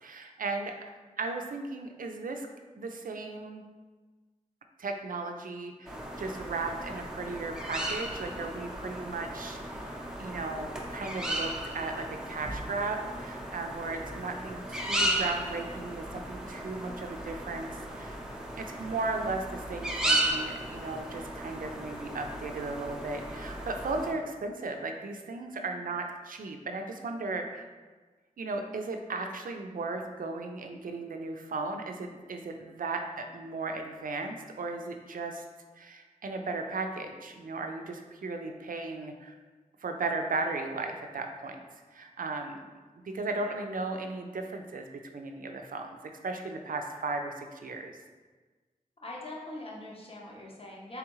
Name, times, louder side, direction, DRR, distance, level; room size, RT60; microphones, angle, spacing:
voice 1, 0.0-0.7 1.2-2.5 2.8-3.6 4.8-17.7 17.9-18.2 18.6-27.6 28.4-35.4 35.8-39.3 39.8-41.6 41.9-42.7 43.0-44.9 45.1-48.0, right 3 dB, 75° right, 4 dB, 0.4 m, -36 dB
sound 1, 5.9-24.1, right 1 dB, 5° right, 0.6 m, -35 dB
voice 2, 49.0-51.0, left 1 dB, 40° left, -2 dB, 0.8 m, -42 dB
3.5 x 3.3 x 3.0 m, 1.3 s
cardioid pair, 45°, 14 cm